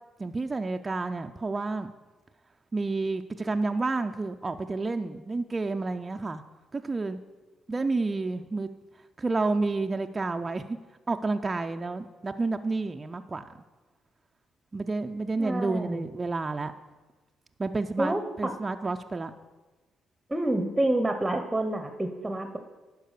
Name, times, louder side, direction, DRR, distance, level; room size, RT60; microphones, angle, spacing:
voice 1, 0.2-1.9 2.7-6.4 6.7-7.2 7.7-8.7 9.2-10.8 11.1-13.4 14.7-16.7 17.6-19.3, right 3 dB, 25° right, 6 dB, 0.4 m, -30 dB
voice 2, 15.4-16.1 18.0-18.2 20.3-22.6, right 1 dB, 10° right, 7 dB, 0.8 m, -28 dB
11.5 x 4.7 x 6.6 m, 1.2 s
cardioid pair, 90°, 0 cm